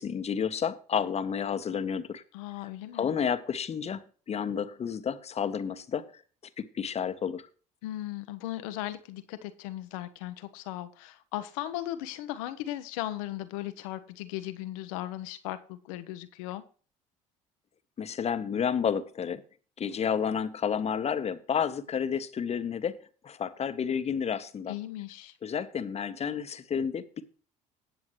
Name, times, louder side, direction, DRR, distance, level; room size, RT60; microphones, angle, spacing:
voice 1, 0.0-2.2 2.9-6.2 6.6-7.5 18.0-19.4 19.8-23.0 23.2-24.7 25.4-27.2, left 7 dB, 35° left, 1.1 m, -31 dB
voice 2, 2.3-3.1 7.8-16.6 24.7-25.3, left 14 dB, 75° left, 0.9 m, -37 dB
18.0 x 7.1 x 3.2 m
hypercardioid pair, 60°, 18 cm